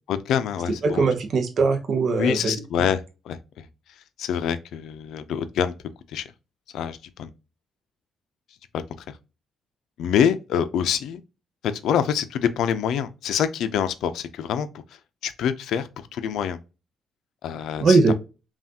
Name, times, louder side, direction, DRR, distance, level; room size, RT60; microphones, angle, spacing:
voice 1, 0.1-1.1 2.2-3.7 4.2-5.7 6.1-6.3 6.7-7.3 8.7-8.8 10.0-11.2 11.6-14.7 15.2-16.6 17.4-18.0, left 8 dB, 75° left, 0.5 m, -25 dB
voice 2, 0.8-2.6 17.8-18.1, right 4 dB, 40° right, 0.7 m, -20 dB
5.6 x 2.4 x 2.8 m
cardioid pair, 165°, 0 cm